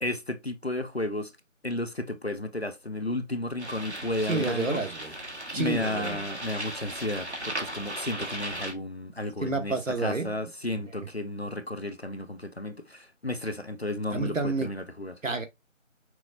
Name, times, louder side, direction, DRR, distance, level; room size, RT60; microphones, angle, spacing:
voice 1, 0.0-1.3 1.6-4.8 5.5-15.2, left 1 dB, 55° left, 0.4 m, -33 dB
sound 1, 3.6-8.7, right 1 dB, 55° right, 1.4 m, -37 dB
voice 2, 4.2-5.1 5.5-6.2 9.4-10.4 14.1-14.7 15.2-15.4, right 3 dB, 70° right, 1.1 m, -29 dB
6.0 x 2.2 x 2.5 m
figure-of-eight pair, 175°, 40 cm